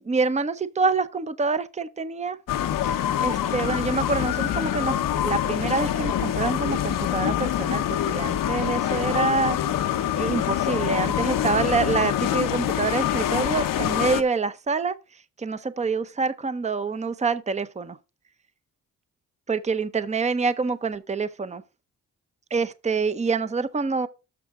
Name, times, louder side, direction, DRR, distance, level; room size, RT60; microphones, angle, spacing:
voice 1, 0.1-2.4 3.2-5.0 5.2-9.6 10.1-14.9 15.4-18.0 19.5-21.6 22.5-24.1, right 4 dB, 20° right, 0.7 m, -26 dB
sound 1, 2.5-14.2, left 11 dB, 80° left, 0.9 m, -25 dB
13.0 x 5.8 x 3.7 m
cardioid pair, 70°, 32 cm